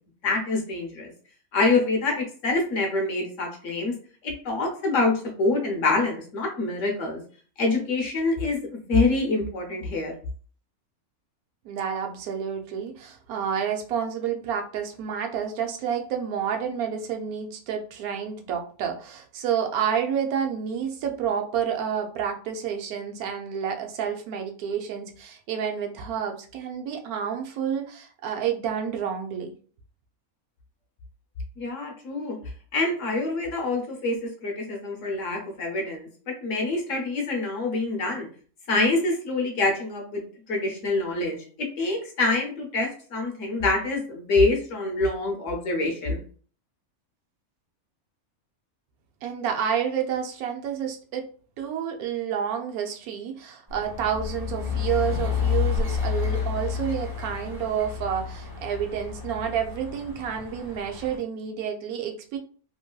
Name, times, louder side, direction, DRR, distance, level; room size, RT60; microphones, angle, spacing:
voice 1, 0.2-1.1 1.5-3.9 4.2-7.2 7.6-10.1 31.6-32.4 32.7-36.1 36.4-38.3 38.7-41.4 41.8-46.2, left 3 dB, 65° left, 2 dB, 1.1 m, -26 dB
voice 2, 11.6-29.5 49.2-51.3 51.6-62.4, right 8 dB, 85° right, 4 dB, 1.1 m, -29 dB
sound 1, 53.7-61.2, left 7 dB, 20° right, 0.7 m, -30 dB
3.0 x 2.6 x 2.2 m, 0.43 s
omnidirectional pair, 1.5 m